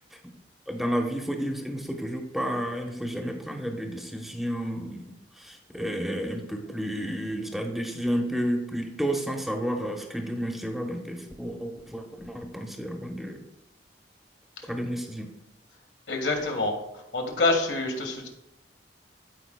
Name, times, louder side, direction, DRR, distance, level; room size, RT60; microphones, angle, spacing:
voice 1, 0.7-13.4 14.7-15.3, equal, ahead, 2 dB, 0.9 m, -31 dB
voice 2, 16.1-16.8 17.1-18.3, left 3 dB, 80° left, 3 dB, 1.4 m, -26 dB
13.0 x 4.9 x 2.2 m, 0.90 s
head